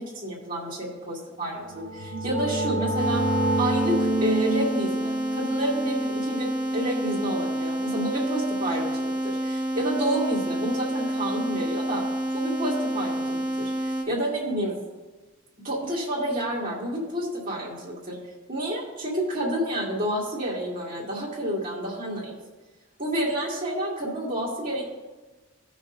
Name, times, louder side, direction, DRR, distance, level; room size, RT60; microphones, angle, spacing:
voice 1, 0.0-12.0 12.3-13.7 14.1-14.8 15.6-18.2 18.5-22.4 23.0-24.8, right 1 dB, 40° right, -6 dB, 2.3 m, -29 dB
sound 1, 1.6-7.2, right 2 dB, 90° right, 0.9 m, -28 dB
sound 2, 2.9-14.0, right 1 dB, 20° right, 1.5 m, -28 dB
16.5 x 6.2 x 2.6 m, 1.2 s
head